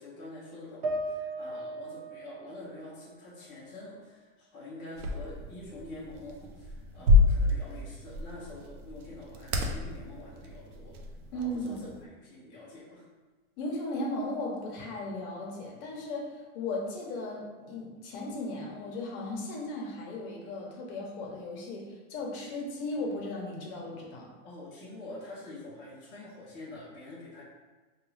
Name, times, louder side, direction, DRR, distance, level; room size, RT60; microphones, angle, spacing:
voice 1, 0.0-11.0 11.3-13.1 24.4-27.4, left 2 dB, 15° left, -9 dB, 0.4 m, -46 dB
sound 1, 0.8-4.2 4.6-5.7, right 2 dB, 45° right, 0.4 m, -39 dB
sound 2, 5.0-12.0, left 3 dB, 90° right, 0.6 m, -29 dB
voice 2, 11.3-11.8 13.6-24.3, left 1 dB, 40° left, -1 dB, 0.8 m, -36 dB
3.6 x 2.3 x 3.1 m, 1.3 s
supercardioid pair, 150°, 43 cm